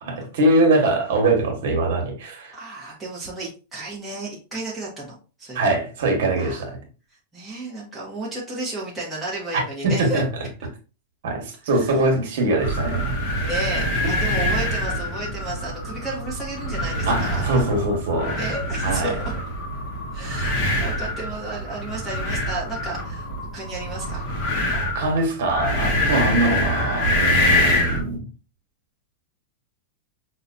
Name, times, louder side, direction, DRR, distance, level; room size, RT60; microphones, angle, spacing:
voice 1, 0.0-2.5 5.5-6.8 9.8-10.2 11.2-13.2 17.0-18.4 18.8-19.1 24.9-28.2, right 2 dB, 60° right, 1.3 m, -22 dB
voice 2, 2.5-5.7 6.4-6.6 7.3-10.2 11.7-12.0 13.4-17.6 18.4-19.2 20.1-24.2 25.9-26.2, right 2 dB, 5° right, 0.9 m, -33 dB
sound 1, 12.6-28.1, left 1 dB, 35° left, 0.8 m, -25 dB
5.5 x 2.3 x 2.5 m
supercardioid pair, 180°, 0 cm